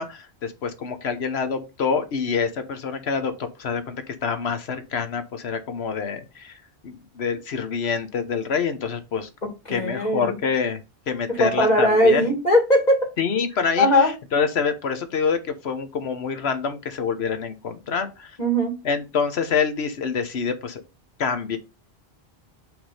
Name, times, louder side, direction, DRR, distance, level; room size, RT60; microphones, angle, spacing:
voice 1, 0.0-6.6 6.8-9.3 9.7-10.8 11.1-12.3 13.2-18.4 18.8-20.8 21.2-21.6, left 6 dB, 85° left, 10 dB, 1.2 m, -26 dB
voice 2, 9.7-10.3 11.3-13.1 13.8-14.1 18.4-18.8, equal, 40° left, 2 dB, 2.2 m, -19 dB
5.9 x 3.6 x 5.5 m, 0.27 s
omnidirectional pair, 1.0 m